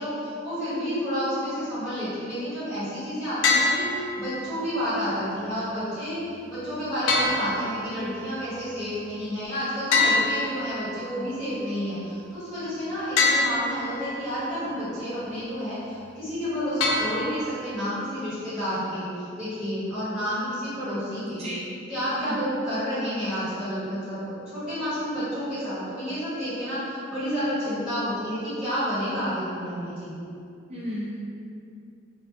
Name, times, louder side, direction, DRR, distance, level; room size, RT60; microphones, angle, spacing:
voice 1, 0.0-6.2 6.5-21.4 21.9-30.2, equal, 5° right, -17 dB, 1.5 m, -30 dB
sound 1, 3.4-4.4 7.1-8.2 9.9-11.1 13.2-14.1 16.8-17.7, left 3 dB, 90° left, 0.3 m, -25 dB
voice 2, 21.3-21.7 22.2-22.4 30.7-31.2, equal, 35° right, -7 dB, 0.5 m, -34 dB
2.4 x 2.2 x 2.5 m, 2.5 s
head